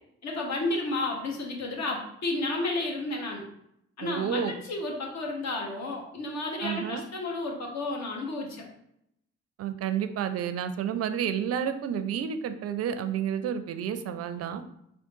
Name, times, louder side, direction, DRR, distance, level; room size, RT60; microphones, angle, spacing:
voice 1, 0.2-3.4 4.0-8.6, left 2 dB, 55° left, 0 dB, 1.0 m, -32 dB
voice 2, 4.0-4.5 6.6-7.0 9.6-14.6, right 8 dB, 50° right, 9 dB, 0.5 m, -30 dB
3.5 x 2.4 x 3.8 m, 0.77 s
hypercardioid pair, 45°, 33 cm